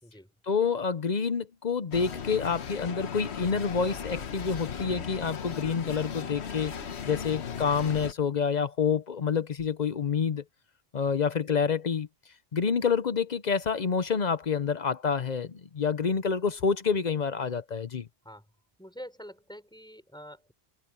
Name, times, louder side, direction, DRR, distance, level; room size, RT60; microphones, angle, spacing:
voice 1, 0.4-6.7 7.1-10.4 10.9-12.1 12.5-18.1, left 6 dB, 50° left, 0.7 m, -28 dB
sound 1, 1.9-8.1, left 7 dB, 90° left, 1.3 m, -37 dB
voice 2, 18.8-20.5, equal, 5° left, 5.6 m, -46 dB
omnidirectional pair, 1.1 m